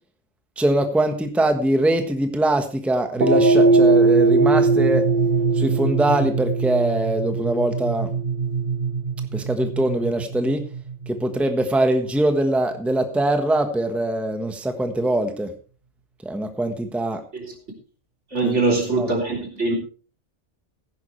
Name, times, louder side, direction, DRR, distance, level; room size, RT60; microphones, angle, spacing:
voice 1, 0.6-5.1 5.5-8.1 9.3-10.6 11.1-15.5 16.2-17.2 18.4-19.1, right 1 dB, ahead, 1.2 m, -22 dB
sound 1, 3.2-11.6, right 3 dB, 40° right, 1.3 m, -20 dB
voice 2, 18.3-19.7, right 3 dB, 75° right, 3.5 m, -22 dB
15.5 x 10.5 x 3.2 m
omnidirectional pair, 1.2 m